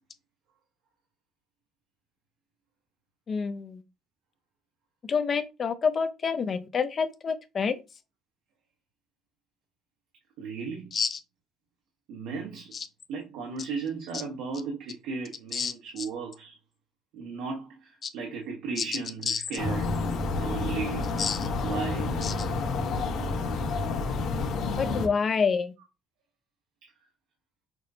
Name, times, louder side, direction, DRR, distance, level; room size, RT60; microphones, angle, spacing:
voice 1, 3.3-3.8 5.0-7.8 10.9-11.2 12.7-12.9 15.5-15.7 18.0-18.1 19.3-19.4 21.2-21.4 22.2-22.3 24.8-25.7, left 5 dB, 35° left, 0.5 m, -28 dB
voice 2, 10.4-10.9 12.1-12.8 13.1-16.6 17.1-21.1 21.6-22.2 26.8-26.9, right 5 dB, 85° right, 1.1 m, -36 dB
sound 1, 19.6-25.1, left 3 dB, 70° left, 1.1 m, -29 dB
5.9 x 2.0 x 2.7 m
cardioid pair, 130°, 0 cm